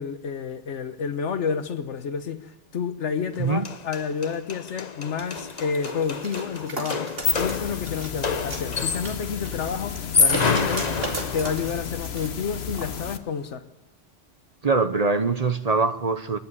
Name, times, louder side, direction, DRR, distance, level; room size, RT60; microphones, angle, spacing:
voice 1, 0.0-13.6, left 6 dB, 80° left, 1.3 m, -30 dB
sound 1, 3.3-3.4 3.6-9.3 9.9-11.8, left 5 dB, 40° left, 0.9 m, -28 dB
sound 2, 5.2-12.3 12.7-12.9, right 2 dB, 55° right, 2.8 m, -37 dB
sound 3, 7.0-13.2, left 7 dB, 65° left, 1.2 m, -32 dB
voice 2, 14.6-16.4, right 4 dB, 40° right, 0.8 m, -23 dB
28.0 x 11.5 x 9.7 m
omnidirectional pair, 1.2 m